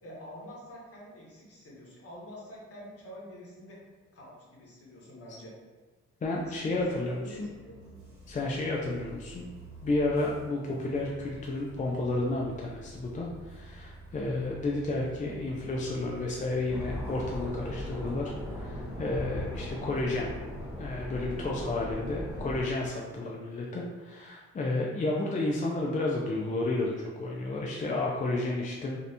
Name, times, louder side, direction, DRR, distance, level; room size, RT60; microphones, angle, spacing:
voice 1, 0.0-3.8 4.1-5.5 6.4-7.8 21.4-21.8 22.1-22.5, equal, 50° left, -4 dB, 1.2 m, -46 dB
voice 2, 6.2-7.5 8.3-9.5 9.8-20.3 20.8-29.0, left 2 dB, 25° left, -2 dB, 0.4 m, -31 dB
Bus, 6.2-20.3, right 1 dB, 45° right, 1.4 m, -49 dB
sound 1, 16.7-22.6, left 1 dB, 5° right, 1.3 m, -38 dB
3.1 x 2.8 x 2.7 m, 1.3 s
cardioid pair, 90°, 30 cm